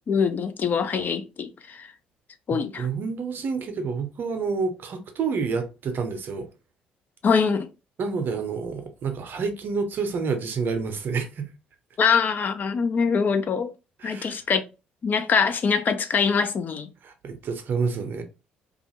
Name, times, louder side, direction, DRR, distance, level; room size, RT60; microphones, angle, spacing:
voice 1, 0.1-1.9 2.5-2.9 7.2-7.7 12.0-13.7 14.0-14.6 15.0-16.9, left 6 dB, 45° left, 0.4 m, -23 dB
voice 2, 2.5-6.5 8.0-11.5 14.0-14.4 17.0-18.2, right 5 dB, 50° right, 0.6 m, -29 dB
2.5 x 2.3 x 3.0 m
hypercardioid pair, 50°, 4 cm